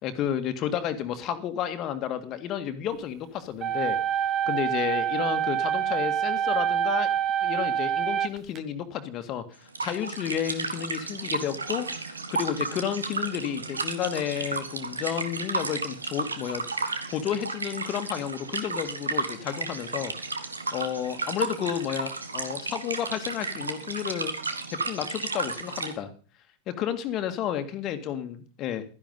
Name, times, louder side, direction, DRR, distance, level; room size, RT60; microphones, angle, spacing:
voice 1, 0.0-4.0 4.5-7.1 7.4-9.5 9.8-16.6 17.1-20.1 20.7-24.3 24.7-26.1 26.7-28.8, left 9 dB, 35° left, 8 dB, 1.9 m, -31 dB
sound 1, 3.6-8.6, right 9 dB, 30° right, 1.1 m, -26 dB
sound 2, 9.7-25.9, right 3 dB, 75° right, 1.6 m, -33 dB
13.5 x 10.5 x 5.4 m, 0.38 s
figure-of-eight pair, 90°, 0 cm